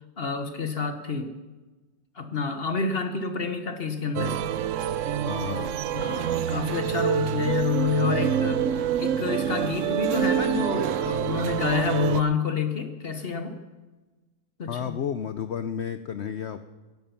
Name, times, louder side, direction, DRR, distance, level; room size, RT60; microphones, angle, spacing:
voice 1, 0.2-1.4 2.1-4.4 5.9-13.6 14.6-15.0, left 5 dB, 40° left, 7 dB, 1.0 m, -28 dB
sound 1, 4.1-12.2, right 9 dB, 70° right, 0.7 m, -26 dB
voice 2, 5.2-5.8 14.7-16.6, left 8 dB, 85° left, 11 dB, 0.6 m, -32 dB
17.0 x 12.5 x 5.8 m, 1.2 s
omnidirectional pair, 1.8 m